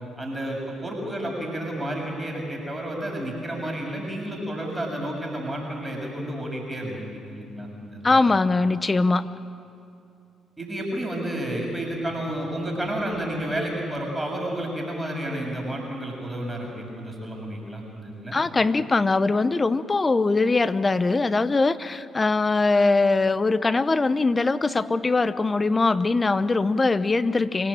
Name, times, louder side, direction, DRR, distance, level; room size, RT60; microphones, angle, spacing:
voice 1, 0.2-8.2 10.6-18.4, right 1 dB, 15° right, -1 dB, 7.0 m, -31 dB
voice 2, 8.0-9.3 18.3-27.7, left 3 dB, 30° left, 14 dB, 0.9 m, -21 dB
26.0 x 18.0 x 8.8 m, 2.5 s
hypercardioid pair, 55°, 0 cm